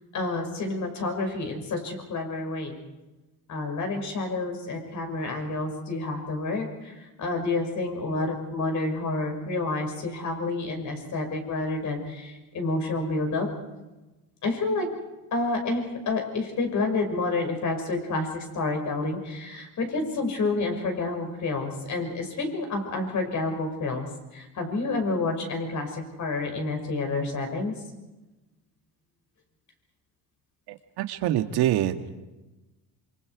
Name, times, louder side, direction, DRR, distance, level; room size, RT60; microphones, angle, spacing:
voice 1, 0.1-2.8 3.5-13.5 14.4-14.9 15.3-24.0 24.3-27.7, left 3 dB, 50° left, 4 dB, 6.0 m, -29 dB
voice 2, 30.7-32.2, right 12 dB, 75° right, 7 dB, 1.9 m, -26 dB
27.0 x 26.0 x 4.9 m, 1.1 s
cardioid pair, 115°, 39 cm